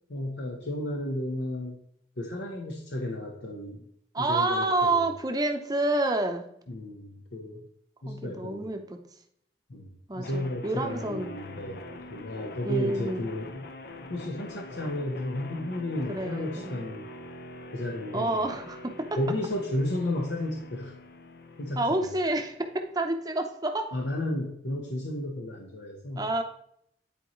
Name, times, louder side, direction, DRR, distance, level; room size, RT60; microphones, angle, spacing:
voice 1, 0.1-1.8 2.2-3.8 4.2-5.1 6.7-7.6 8.0-8.6 9.7-13.6 14.1-17.1 17.7-18.4 19.1-21.0 21.6-22.1 23.9-26.3, left 1 dB, 75° left, 0 dB, 1.0 m, -33 dB
voice 2, 4.1-6.4 8.0-9.0 10.1-11.3 12.6-13.2 16.1-16.8 18.1-19.2 21.8-22.6 22.9-23.9 26.2-26.4, right 2 dB, 20° right, 5 dB, 0.7 m, -28 dB
sound 1, 10.2-23.2, left 2 dB, 60° left, 0.6 m, -44 dB
10.5 x 4.3 x 3.1 m, 0.71 s
head